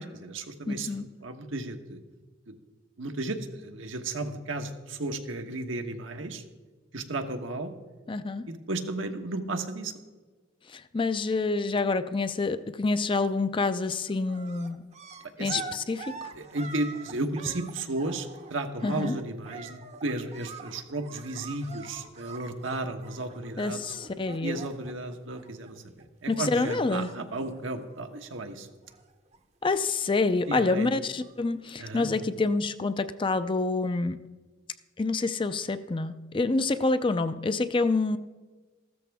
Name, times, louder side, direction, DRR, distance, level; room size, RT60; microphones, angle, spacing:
voice 1, 0.0-0.9 1.2-2.0 3.0-6.4 6.9-7.7 8.5-9.9 15.4-15.6 16.3-23.8 24.4-28.7 30.5-30.9 31.8-32.1, right 2 dB, 80° right, 1.2 m, -34 dB
voice 2, 0.7-1.0 8.1-8.5 10.7-14.8 15.4-16.3 18.8-19.2 23.6-24.6 26.3-27.1 29.6-34.2 35.0-38.2, left 3 dB, 25° left, 0.4 m, -27 dB
sound 1, 13.0-13.5 13.7-26.0 26.3-28.4 28.7-29.4 29.7-31.5 32.2-32.3, right 4 dB, 35° right, 0.7 m, -45 dB
14.5 x 13.0 x 3.5 m
head